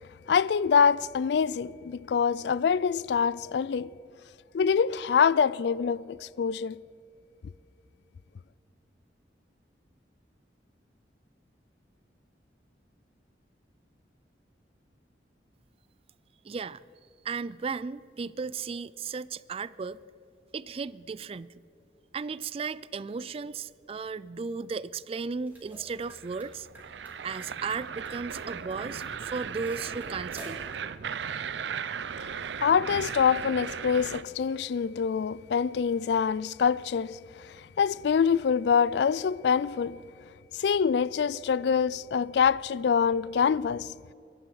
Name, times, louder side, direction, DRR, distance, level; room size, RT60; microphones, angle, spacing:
voice 1, 0.3-3.9 4.5-6.8 32.6-37.2 37.8-40.0 40.6-43.9, left 6 dB, 70° left, 0.3 m, -25 dB
voice 2, 16.4-16.8 17.2-20.0 20.5-21.6 22.1-26.7 27.2-30.6, right 5 dB, 35° right, 0.3 m, -35 dB
sound 1, 25.3-30.7, right 1 dB, 10° right, 3.7 m, -52 dB
sound 2, 26.1-34.2, right 7 dB, 85° right, 0.6 m, -37 dB
23.0 x 11.5 x 4.8 m
head